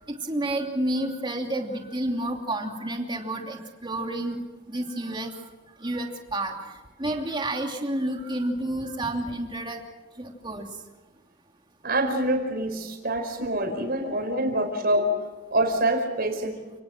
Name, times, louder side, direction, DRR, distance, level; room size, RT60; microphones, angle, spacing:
voice 1, 0.1-5.3 5.8-6.7 7.0-9.8 10.2-10.7, right 1 dB, 25° right, 2 dB, 2.9 m, -30 dB
voice 2, 11.8-15.1 15.5-16.6, right 1 dB, 55° right, 5 dB, 4.8 m, -25 dB
29.0 x 19.5 x 6.1 m, 1.2 s
head